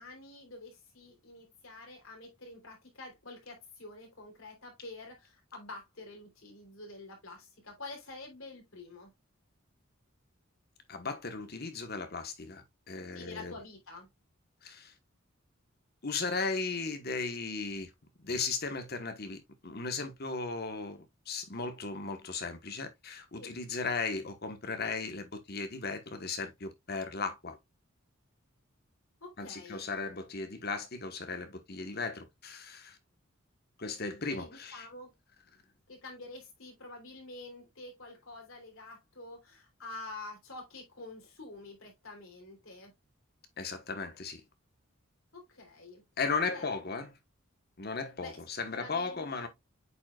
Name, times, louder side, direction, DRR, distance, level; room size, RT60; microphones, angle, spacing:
voice 1, 0.0-9.1 13.1-14.1 23.4-23.5 29.2-29.8 34.3-35.1 35.9-42.9 45.3-46.0 46.5-46.7 48.2-48.4 48.7-49.5, left 2 dB, 80° left, 3.3 m, -48 dB
voice 2, 10.9-13.5 14.6-14.9 16.0-17.9 18.2-27.6 29.4-33.0 33.8-34.8 43.6-44.4 46.2-47.1 47.8-49.5, left 4 dB, 50° left, 1.2 m, -36 dB
8.2 x 5.2 x 2.3 m
head